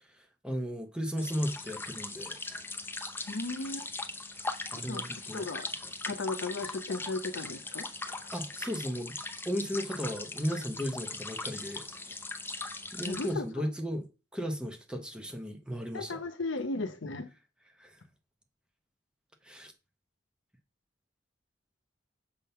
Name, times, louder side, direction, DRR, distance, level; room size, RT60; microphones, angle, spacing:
voice 1, 0.4-2.4 4.7-5.5 8.3-9.2 9.4-11.9 12.9-14.1 14.3-16.2 17.8-17.9 19.4-19.7, equal, 5° right, 1.0 m, -35 dB
sound 1, 1.2-13.3, left 3 dB, 10° left, 0.7 m, -40 dB
voice 2, 3.3-3.9 4.8-5.7 6.0-8.3 13.0-13.7 15.9-17.3, left 3 dB, 85° left, 0.8 m, -36 dB
7.0 x 3.8 x 5.6 m
head